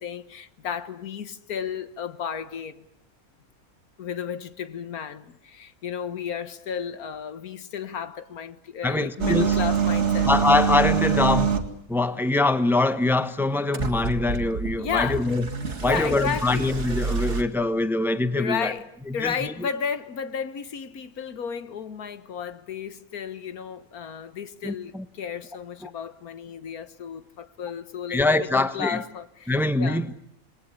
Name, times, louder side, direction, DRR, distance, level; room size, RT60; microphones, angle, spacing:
voice 1, 0.0-2.9 4.0-10.3 14.8-15.3 15.8-16.8 18.4-30.1, left 7 dB, 80° left, 1.8 m, -33 dB
voice 2, 8.8-9.6 10.2-11.6 11.9-15.5 15.8-18.7 19.2-19.5 24.6-25.0 25.8-25.9 28.1-29.0 29.5-30.1, left 2 dB, ahead, 1.0 m, -23 dB
sound 1, 9.2-11.8 13.7-17.4, right 7 dB, 50° right, 2.3 m, -25 dB
28.0 x 20.5 x 9.8 m
omnidirectional pair, 1.5 m